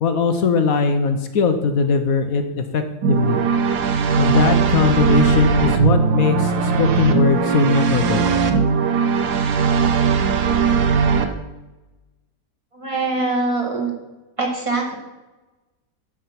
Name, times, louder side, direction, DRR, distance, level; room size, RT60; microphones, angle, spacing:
voice 1, 0.0-3.4 4.2-8.3, left 4 dB, 60° left, 7 dB, 1.1 m, -20 dB
sound 1, 3.0-11.3, right 6 dB, 65° right, 1.4 m, -19 dB
voice 2, 12.7-13.9 14.4-14.9, right 3 dB, 20° right, 0 dB, 1.8 m, -23 dB
13.5 x 5.0 x 5.9 m, 1.1 s
omnidirectional pair, 2.0 m